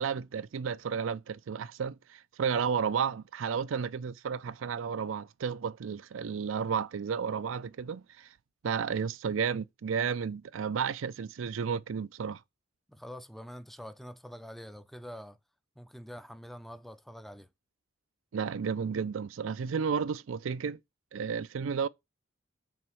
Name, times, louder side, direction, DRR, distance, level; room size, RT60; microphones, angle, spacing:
voice 1, 0.0-8.3 8.6-12.4 18.3-20.8 21.1-21.9, right 6 dB, 75° right, 0.4 m, -32 dB
voice 2, 12.9-15.4 15.8-17.5, equal, ahead, 0.5 m, -45 dB
6.1 x 4.2 x 6.1 m
head